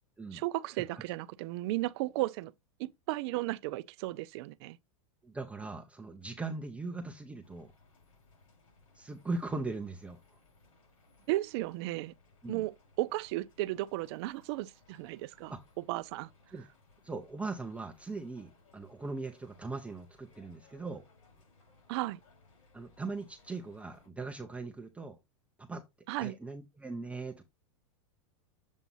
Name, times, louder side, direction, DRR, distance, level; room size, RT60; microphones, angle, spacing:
voice 1, 0.3-2.5 2.8-4.8 11.3-12.1 12.5-12.7 13.0-15.5 15.9-16.3 21.9-22.2 26.1-26.3, right 18 dB, 50° right, 0.5 m, -34 dB
voice 2, 5.2-7.7 8.9-10.2 12.4-12.6 15.5-15.6 16.5-16.7 17.0-21.0 22.7-25.2 25.6-25.8 26.2-27.4, right 3 dB, 5° right, 0.7 m, -40 dB
sound 1, 7.4-24.1, left 3 dB, 85° left, 4.5 m, -64 dB
7.3 x 2.7 x 5.4 m
supercardioid pair, 135°, 17 cm